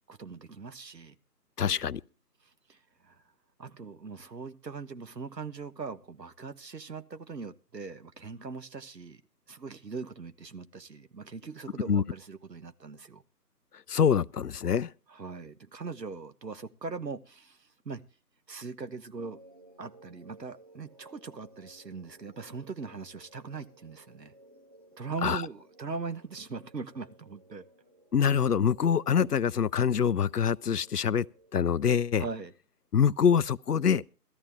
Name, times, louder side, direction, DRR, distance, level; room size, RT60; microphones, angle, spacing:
voice 1, 0.1-1.1 1.7-1.8 2.7-2.8 3.0-3.2 3.6-9.2 9.5-13.2 15.1-18.0 18.5-19.4 19.8-24.3 25.0-27.6 32.1-32.5, right 4 dB, 80° right, 1.2 m, -40 dB
voice 2, 1.6-2.0 11.9-12.0 13.9-14.9 25.2-25.4 28.1-31.2 31.5-32.2 32.9-34.0, left 7 dB, 70° left, 0.5 m, -25 dB
sound 1, 19.2-32.6, right 1 dB, 25° right, 1.0 m, -58 dB
16.5 x 13.0 x 3.5 m
figure-of-eight pair, 160°, 49 cm